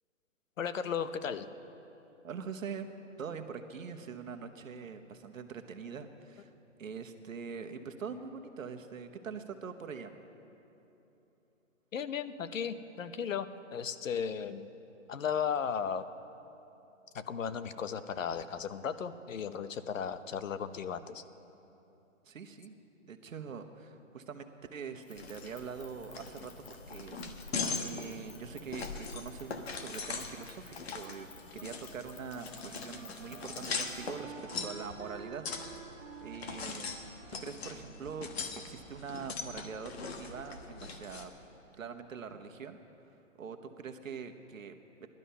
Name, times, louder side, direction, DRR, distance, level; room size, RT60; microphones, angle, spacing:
voice 1, 0.6-1.5 11.9-14.7 15.1-16.1 17.1-21.2, left 7 dB, 75° left, 12 dB, 0.9 m, -35 dB
voice 2, 2.2-2.9 3.2-6.5 6.8-10.1 22.2-22.7 23.0-31.3 31.5-34.3 34.6-35.5 35.9-36.9 37.4-41.3 41.8-42.8 43.4-45.1, right 6 dB, 80° right, 7 dB, 1.2 m, -43 dB
sound 1, 25.0-34.2, left 5 dB, 25° left, 0.9 m, -56 dB
sound 2, 25.2-41.3, left 4 dB, 50° left, 1.4 m, -41 dB
Wind instrument woodwind instrument, 31.4-39.2, right 6 dB, 30° right, 2.6 m, -51 dB
17.5 x 12.0 x 5.6 m, 3.0 s
hypercardioid pair, 160°, 39 cm